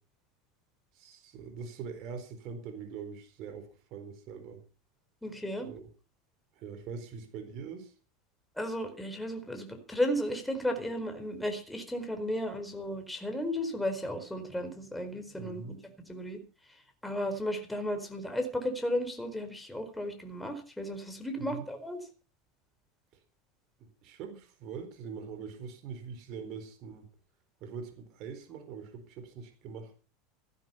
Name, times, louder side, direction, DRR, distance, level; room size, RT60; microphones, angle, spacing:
voice 1, 0.9-4.6 5.6-5.9 6.5-7.9 15.4-15.8 21.4-21.7 23.8-27.1 27.6-29.9, right 6 dB, 55° right, 6 dB, 4.4 m, -43 dB
voice 2, 5.2-5.7 8.6-15.8 16.1-16.4 17.0-22.0, equal, 5° left, 6 dB, 4.4 m, -34 dB
15.5 x 12.0 x 5.8 m, 0.37 s
hypercardioid pair, 95°, 0 cm